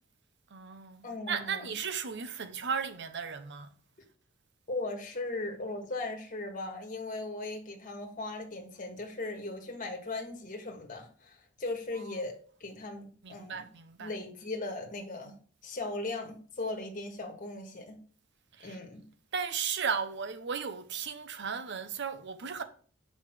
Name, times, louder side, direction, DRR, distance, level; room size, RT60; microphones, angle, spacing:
voice 1, 0.5-3.7 11.9-12.2 13.2-14.2 18.6-18.8 19.3-22.6, right 6 dB, 60° right, 0.9 m, -35 dB
voice 2, 1.0-1.7 4.7-12.3 12.6-13.6 14.0-15.3 15.6-18.0 18.6-19.0, left 2 dB, 40° left, 1.6 m, -38 dB
6.4 x 5.3 x 5.0 m
head